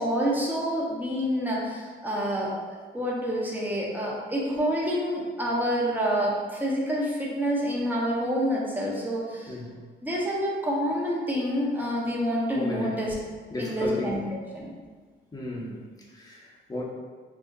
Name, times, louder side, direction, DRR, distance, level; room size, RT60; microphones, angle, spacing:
voice 1, 0.0-2.5 2.9-9.5 10.0-13.1 13.6-14.2 14.5-14.7, equal, 10° right, -4 dB, 0.8 m, -27 dB
voice 2, 9.5-9.8 12.5-13.1 13.5-14.3 15.3-16.8, left 2 dB, 20° left, -4 dB, 0.8 m, -34 dB
2.7 x 2.6 x 3.7 m, 1.5 s
cardioid pair, 90°, 20 cm